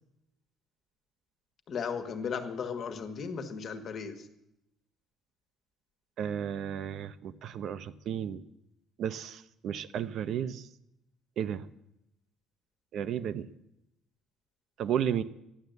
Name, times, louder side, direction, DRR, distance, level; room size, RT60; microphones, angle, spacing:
voice 1, 1.7-4.2, left 6 dB, 40° left, 7 dB, 1.7 m, -35 dB
voice 2, 6.2-8.4 9.0-10.7 11.4-11.7 12.9-13.5 14.8-15.2, right 9 dB, 55° right, 12 dB, 0.7 m, -33 dB
13.5 x 11.0 x 8.0 m, 0.83 s
cardioid pair, 160°, 0 cm